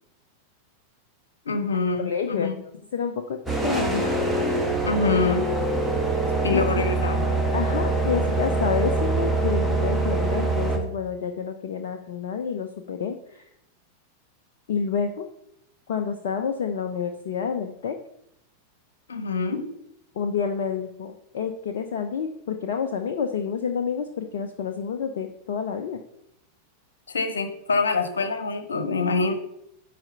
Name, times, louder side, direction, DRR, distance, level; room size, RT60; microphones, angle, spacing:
voice 1, 1.4-2.5 4.8-5.4 6.4-7.3 19.1-19.6 27.1-29.3, left 4 dB, 70° left, 9 dB, 1.3 m, -25 dB
voice 2, 2.0-4.2 6.5-6.9 7.5-13.5 14.7-15.3 15.9-18.0 20.2-26.0, left 6 dB, 55° left, 5 dB, 0.8 m, -29 dB
sound 1, 3.5-10.8, right 2 dB, 5° right, 1.7 m, -24 dB
10.5 x 4.3 x 6.8 m, 0.77 s
figure-of-eight pair, 90°, 0 cm